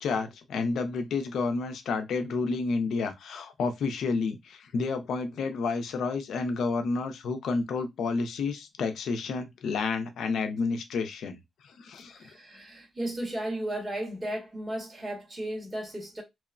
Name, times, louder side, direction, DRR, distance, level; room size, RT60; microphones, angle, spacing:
voice 1, 0.0-11.4 11.6-12.2, left 4 dB, 75° left, 0.5 m, -30 dB
voice 2, 12.1-16.2, right 1 dB, 25° right, 1.4 m, -35 dB
2.9 x 2.0 x 2.4 m
cardioid pair, 90°, 0 cm